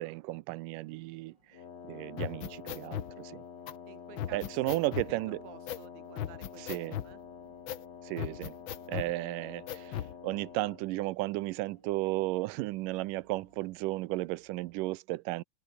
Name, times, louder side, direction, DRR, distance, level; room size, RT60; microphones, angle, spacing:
voice 1, 0.0-1.6 1.9-3.4 4.3-5.4 6.6-7.0 8.0-8.6 8.9-15.4, right 19 dB, 90° right, 2.3 m, -34 dB
sound 1, 0.8-14.8, right 2 dB, 30° right, 8.2 m, -65 dB
Wind instrument woodwind instrument, 1.5-10.9, left 7 dB, 55° left, 3.8 m, -48 dB
sound 2, 2.2-3.1 3.7-3.8 4.2-5.1 5.7-5.9 6.2-7.1 7.7-7.8 8.2-9.1 9.7-10.1, left 11 dB, 70° left, 1.1 m, -37 dB
voice 2, 3.9-7.2, right 11 dB, 70° right, 2.8 m, -53 dB
open air
omnidirectional pair, 3.7 m